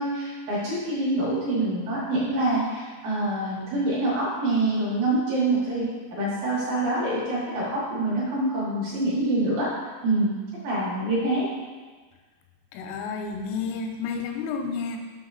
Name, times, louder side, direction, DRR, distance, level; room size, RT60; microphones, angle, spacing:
voice 1, 0.0-9.7 10.0-10.4 10.6-11.5, right 2 dB, 65° right, -7 dB, 2.5 m, -26 dB
voice 2, 12.7-15.0, left 5 dB, 90° left, 3 dB, 3.3 m, -31 dB
7.0 x 6.0 x 4.0 m, 1.4 s
omnidirectional pair, 5.6 m